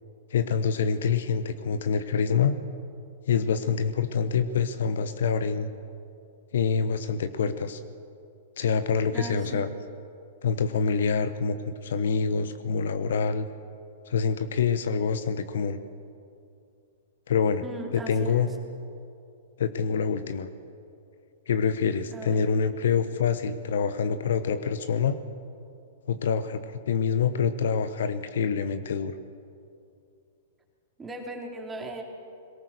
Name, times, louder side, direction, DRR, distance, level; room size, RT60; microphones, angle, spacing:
voice 1, 0.3-2.6 3.3-5.7 6.5-7.8 8.6-9.7 10.4-11.6 11.8-13.5 14.1-15.8 17.3-17.6 17.9-18.5 19.6-20.5 21.5-25.2 26.1-29.2, left 6 dB, 65° left, 11 dB, 1.0 m, -26 dB
voice 2, 9.1-9.7 17.6-18.5 22.1-22.4 31.0-32.0, right 2 dB, 15° right, 1 dB, 3.3 m, -38 dB
22.0 x 18.5 x 6.7 m, 2.5 s
figure-of-eight pair, 105°, 0 cm